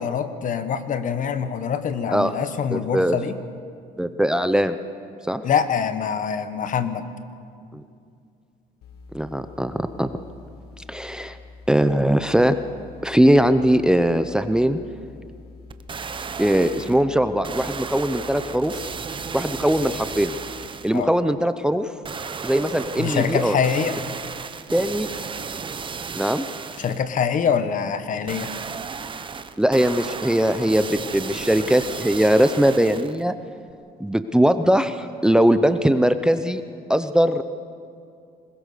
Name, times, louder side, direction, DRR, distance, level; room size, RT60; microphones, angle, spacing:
voice 1, 0.0-3.4 5.4-7.0 20.9-21.1 23.0-24.0 26.8-28.5, left 7 dB, 50° left, 11 dB, 1.4 m, -24 dB
voice 2, 2.7-3.2 4.0-4.8 5.3-5.4 7.7-7.8 9.1-10.1 10.9-11.4 11.7-12.5 13.0-14.8 16.4-18.8 19.3-20.3 20.8-21.9 22.4-23.6 24.7-25.1 26.1-26.4 29.6-33.3 34.0-36.6 36.9-37.4, equal, 5° right, 10 dB, 0.7 m, -20 dB
sound 1, 8.8-20.7, left 3 dB, 70° left, 1.7 m, -45 dB
sound 2, 15.7-17.0 17.4-21.0 22.0-27.0 28.3-33.2 33.7-33.8, right 5 dB, 30° right, 1.0 m, -34 dB
21.0 x 21.0 x 6.7 m, 2.3 s
cardioid pair, 110°, 17 cm